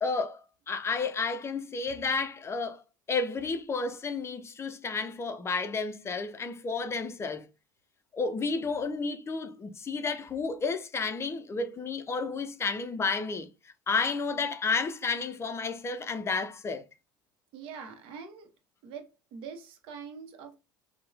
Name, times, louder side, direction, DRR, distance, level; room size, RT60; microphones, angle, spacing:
voice 1, 0.0-2.8 3.1-7.5 8.1-13.5 13.9-16.8, left 4 dB, 25° left, 0.4 m, -31 dB
voice 2, 17.5-18.5 18.8-20.6, right 6 dB, 55° right, 0.7 m, -44 dB
2.9 x 2.1 x 2.3 m
hypercardioid pair, 70°, 11 cm